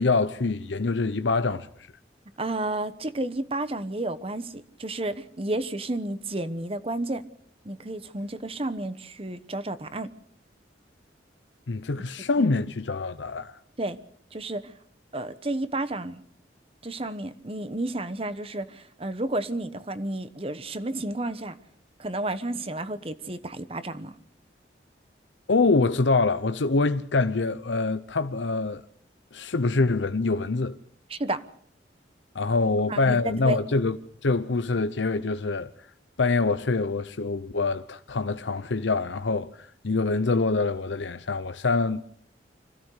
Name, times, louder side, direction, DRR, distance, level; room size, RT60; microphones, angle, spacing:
voice 1, 0.0-1.9 11.7-13.6 25.5-28.8 29.3-30.8 32.3-34.0 34.2-35.7 36.2-42.2, left 3 dB, 90° left, 0.8 m, -25 dB
voice 2, 2.4-7.2 7.6-10.1 12.4-12.5 13.8-14.0 14.3-14.7 15.1-16.2 16.8-21.6 22.0-24.1 31.1-31.5 32.9-33.2 33.4-33.6, right 2 dB, 30° right, 1.1 m, -31 dB
25.5 x 16.0 x 6.6 m
head